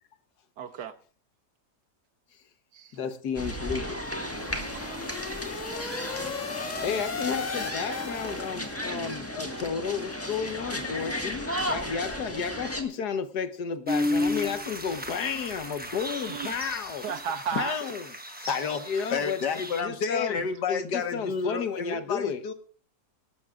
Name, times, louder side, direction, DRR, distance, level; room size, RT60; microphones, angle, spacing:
voice 1, 0.6-1.0 2.7-3.0 4.7-5.0 16.2-16.6 17.0-17.8, right 7 dB, 80° right, 1.6 m, -34 dB
voice 2, 2.9-4.0 6.8-17.2 17.6-18.0 18.9-20.4 20.7-22.4, left 6 dB, 70° left, 1.6 m, -32 dB
sound 1, 3.3-12.8, equal, 10° left, 1.5 m, -34 dB
sound 2, 3.9-8.9, left 5 dB, 40° left, 0.6 m, -37 dB
sound 3, 13.9-19.8, left 1 dB, 5° right, 0.9 m, -33 dB
voice 3, 18.4-22.5, left 6 dB, 90° left, 2.0 m, -30 dB
25.0 x 12.0 x 2.4 m
omnidirectional pair, 1.8 m